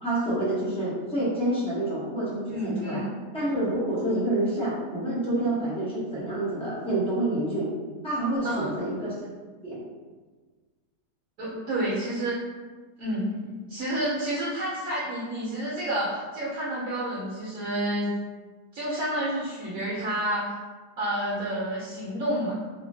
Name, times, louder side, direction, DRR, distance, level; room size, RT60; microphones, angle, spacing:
voice 1, 0.0-3.0 3.3-7.7 8.0-9.1 9.6-9.8, right 1 dB, 10° left, -9 dB, 0.3 m, -28 dB
voice 2, 2.5-3.1 8.4-8.7 11.4-12.4 13.0-18.1 18.7-20.5 21.0-22.5, right 1 dB, 65° right, -7 dB, 1.0 m, -29 dB
2.8 x 2.5 x 2.6 m, 1.4 s
omnidirectional pair, 1.8 m